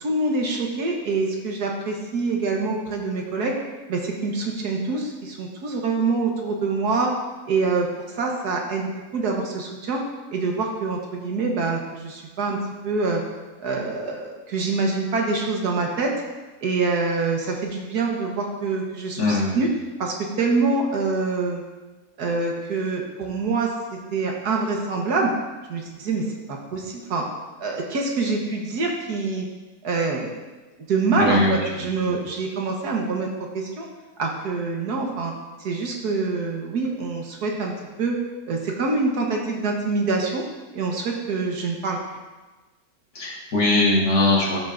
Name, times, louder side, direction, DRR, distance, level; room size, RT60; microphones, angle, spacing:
voice 1, 0.0-3.6 3.9-7.2 7.5-10.0 10.3-12.6 12.8-13.2 13.6-16.1 16.6-19.7 20.0-21.6 22.2-25.3 25.7-27.3 27.6-29.5 29.8-30.4 30.9-33.3 33.5-33.9 34.2-35.3 35.6-37.7 38.0-38.2 38.5-40.4 40.7-42.0, right 3 dB, 85° right, 0 dB, 1.8 m, -25 dB
voice 2, 19.2-19.6 31.2-31.6 32.0-32.1 43.2-44.6, left 2 dB, 80° left, -3 dB, 2.3 m, -20 dB
13.0 x 6.6 x 2.6 m, 1.2 s
omnidirectional pair, 1.6 m